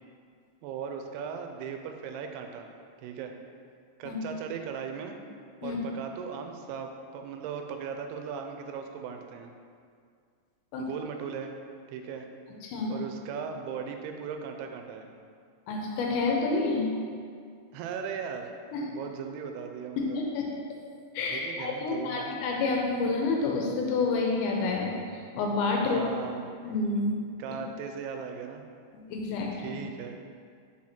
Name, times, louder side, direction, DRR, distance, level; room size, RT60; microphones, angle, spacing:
voice 1, 0.6-2.7 3.0-3.3 4.0-5.2 5.6-9.5 10.8-11.5 11.9-12.3 12.9-15.1 17.7-18.5 18.8-20.2 21.3-22.3 25.9-26.5 27.4-28.6 29.5-30.2, right 6 dB, 90° right, 5 dB, 2.6 m, -38 dB
voice 2, 15.7-16.9 18.7-18.8 20.0-20.4 21.1-26.0 26.6-27.1 29.1-29.8, left 3 dB, 80° left, -1 dB, 2.4 m, -29 dB
6.3 x 4.2 x 4.3 m, 2.2 s
omnidirectional pair, 4.6 m